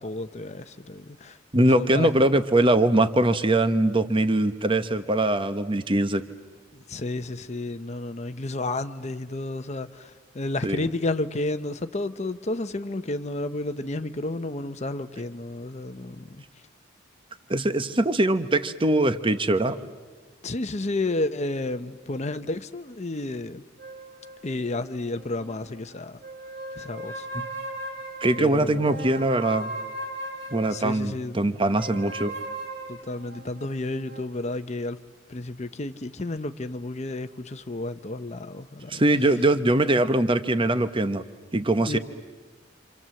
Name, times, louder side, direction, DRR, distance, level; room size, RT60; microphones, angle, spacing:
voice 1, 0.0-1.4 1.7-2.3 6.7-16.4 20.4-23.6 24.4-26.2 26.8-27.3 28.4-29.1 30.7-31.5 32.9-35.0 35.3-39.1 41.9-42.0, left 2 dB, 35° left, 0.8 m, -31 dB
voice 2, 1.5-6.2 10.6-10.9 17.5-19.8 27.3-27.5 28.2-29.7 30.5-32.3 38.9-41.2 41.5-42.0, right 1 dB, 25° right, 1.1 m, -22 dB
sound 1, 23.8-25.8 26.2-31.1 31.8-34.4, right 1 dB, 55° right, 3.4 m, -38 dB
28.0 x 27.0 x 7.7 m
head